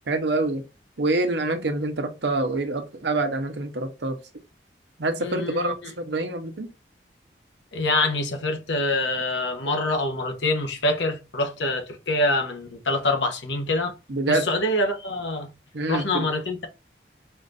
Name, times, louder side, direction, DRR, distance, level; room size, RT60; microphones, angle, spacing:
voice 1, 0.1-0.6 1.0-4.2 5.0-6.7 14.1-14.5 15.7-16.3, right 2 dB, 75° right, 0.9 m, -26 dB
voice 2, 5.2-5.7 7.7-13.9 14.3-15.5 15.9-16.7, left 2 dB, 85° left, 1.1 m, -25 dB
4.2 x 2.6 x 4.1 m
head